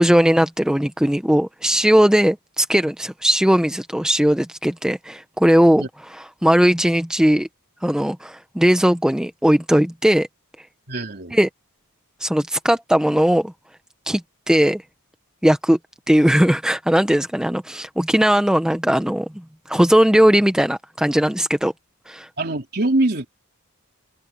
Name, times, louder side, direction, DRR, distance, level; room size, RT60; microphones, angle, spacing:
voice 1, 0.0-7.5 7.8-10.3 11.3-11.5 12.2-13.5 14.1-14.2 14.5-14.8 15.4-15.8 16.1-21.7 22.1-22.3, equal, 5° right, 0.5 m, -18 dB
voice 2, 10.9-11.4 22.4-23.3, right 2 dB, 45° right, 3.4 m, -23 dB
head